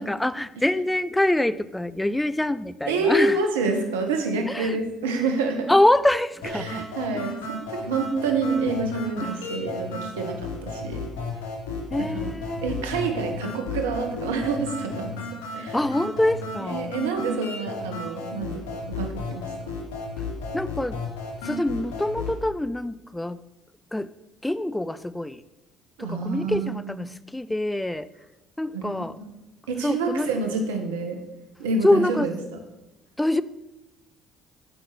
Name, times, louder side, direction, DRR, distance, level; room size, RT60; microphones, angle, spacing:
voice 1, 0.0-3.4 4.5-4.8 5.7-6.9 7.1-7.2 9.2-9.4 11.9-12.8 15.7-16.9 20.2-20.3 20.5-21.0 21.4-23.4 23.9-24.1 24.4-25.4 26.0-28.1 28.6-29.2 29.8-30.3 31.8-32.3 33.2-33.4, left 1 dB, 10° left, 17 dB, 0.6 m, -25 dB
voice 2, 2.9-5.7 6.5-11.1 12.1-12.3 12.6-15.2 15.5-15.8 16.6-19.7 26.0-27.2 28.7-29.0 29.7-31.2 31.6-32.3, right 3 dB, 85° right, 5 dB, 1.6 m, -28 dB
sound 1, 6.4-22.4, left 3 dB, 80° left, 3.2 m, -34 dB
15.0 x 5.7 x 6.8 m, 1.0 s
hypercardioid pair, 60°, 0 cm